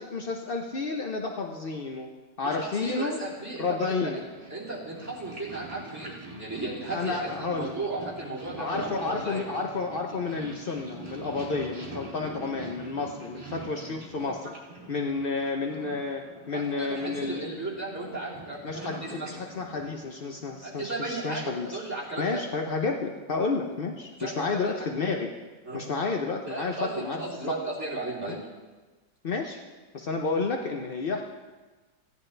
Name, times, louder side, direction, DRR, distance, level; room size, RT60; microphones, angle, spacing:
voice 1, 0.0-2.1 2.4-3.2 3.6-4.2 6.9-7.7 8.6-14.5 14.9-17.4 18.6-21.8 22.2-25.3 25.7-27.2 28.3-28.4 29.2-29.6 29.9-31.2, left 4 dB, 80° left, 2 dB, 0.5 m, -31 dB
voice 2, 2.4-4.2 4.5-9.4 16.5-19.4 20.6-22.4 24.2-24.9 25.6-25.9 26.4-28.4, right 2 dB, 10° right, -8 dB, 3.0 m, -35 dB
Purr, 3.1-20.8, right 2 dB, 40° right, 2.5 m, -44 dB
15.5 x 10.0 x 3.3 m, 1.3 s
omnidirectional pair, 2.0 m